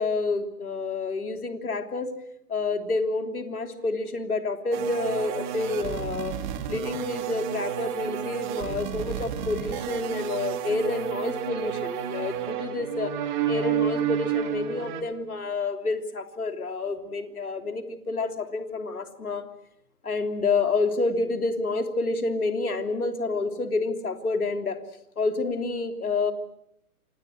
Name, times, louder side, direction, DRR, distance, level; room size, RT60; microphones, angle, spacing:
voice 1, 0.0-2.1 2.5-6.3 6.7-13.1 13.5-19.4 20.0-24.8 25.2-26.3, left 3 dB, 70° left, 6 dB, 3.3 m, -28 dB
sound 1, 4.7-15.0, right 10 dB, 30° right, 2.5 m, -31 dB
28.0 x 26.0 x 6.3 m, 0.76 s
figure-of-eight pair, 130°, 46 cm